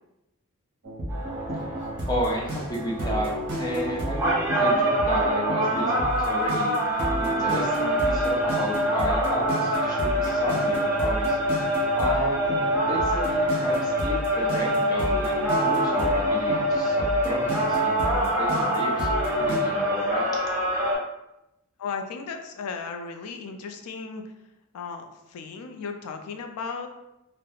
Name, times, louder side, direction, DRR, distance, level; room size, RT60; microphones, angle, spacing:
sound 1, 0.8-19.6, equal, 50° right, 0.7 m, -32 dB
sound 2, 1.1-21.0, right 1 dB, 10° right, 0.9 m, -25 dB
voice 1, 2.1-6.8 7.2-11.4 12.0-20.3, equal, 20° left, -3 dB, 0.5 m, -32 dB
voice 2, 21.8-24.2 24.7-26.9, left 5 dB, 85° left, 5 dB, 0.4 m, -35 dB
2.3 x 2.1 x 2.9 m, 0.90 s
head